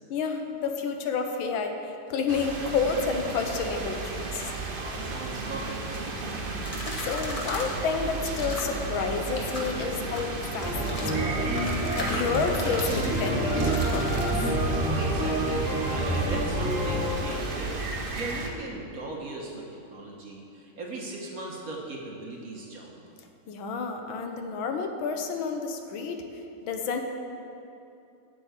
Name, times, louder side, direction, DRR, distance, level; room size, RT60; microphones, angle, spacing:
voice 1, 0.1-4.5 7.0-11.5 12.0-14.3 23.5-26.2 26.6-27.0, left 5 dB, 80° left, 5 dB, 1.6 m, -30 dB
sound 1, 2.3-18.5, right 3 dB, 65° right, 0.5 m, -34 dB
voice 2, 4.7-6.3 14.8-22.9, right 2 dB, 50° right, -2 dB, 1.5 m, -38 dB
sound 2, 6.7-7.8 8.3-8.8 9.2-9.7 10.2-11.2 11.5-14.4, equal, 25° left, 0.9 m, -37 dB
sound 3, 10.6-17.1, right 1 dB, 5° right, 0.6 m, -28 dB
8.4 x 6.5 x 8.0 m, 2.8 s
omnidirectional pair, 2.2 m